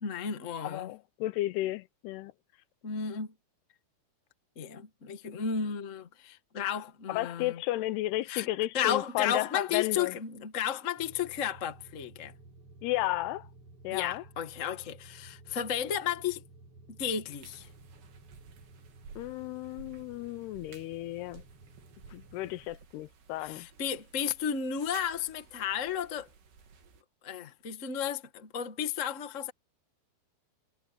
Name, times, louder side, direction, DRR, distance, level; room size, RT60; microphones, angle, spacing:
voice 1, 0.0-0.9 2.8-3.3 4.5-7.6 8.3-8.5 8.7-12.3 13.9-16.4 17.0-17.7 23.4-26.3 27.2-29.5, left 8 dB, 65° left, 0.7 m, -33 dB
voice 2, 0.6-2.3 7.1-10.2 12.8-13.5 13.8-14.2 19.2-21.4 22.1-23.7, left 16 dB, 85° left, 2.8 m, -33 dB
sound 1, 11.0-22.7, right 2 dB, 40° right, 5.2 m, -54 dB
sound 2, 17.3-27.0, right 6 dB, 85° right, 5.4 m, -55 dB
omnidirectional pair, 4.6 m